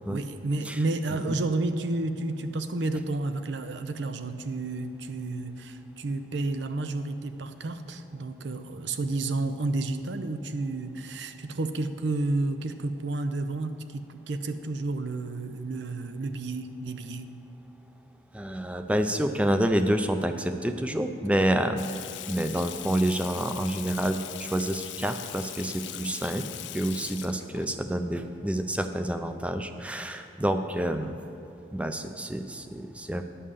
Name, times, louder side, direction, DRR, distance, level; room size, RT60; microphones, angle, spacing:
voice 1, 0.1-17.4, right 2 dB, 85° right, 9 dB, 0.6 m, -31 dB
voice 2, 18.3-21.8 22.3-26.5 26.7-31.1 31.7-33.2, right 1 dB, 5° right, 7 dB, 0.4 m, -28 dB
Water tap faucet / Sink (filling or washing), 21.8-27.7, left 13 dB, 85° left, 0.4 m, -40 dB
9.8 x 5.6 x 6.7 m, 2.9 s
head